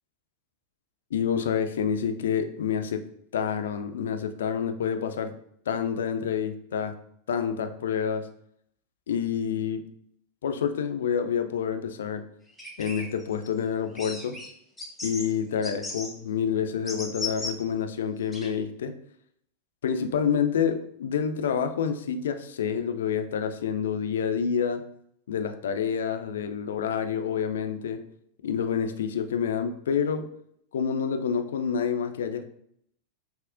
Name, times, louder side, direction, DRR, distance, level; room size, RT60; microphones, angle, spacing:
voice 1, 1.1-3.0 3.3-5.3 5.7-6.9 7.3-8.3 9.1-9.8 10.4-12.2 12.8-14.4 15.0-18.9 19.8-24.8 25.3-28.0 28.4-30.3 30.7-32.5, left 7 dB, 60° left, 8 dB, 0.3 m, -28 dB
sound 1, 12.6-13.5 13.9-14.5 14.8-15.3 15.6-16.1 16.9-17.5 18.3-18.5, left 3 dB, 5° left, 0.9 m, -35 dB
5.9 x 2.1 x 2.4 m, 0.70 s
figure-of-eight pair, 90°, 0 cm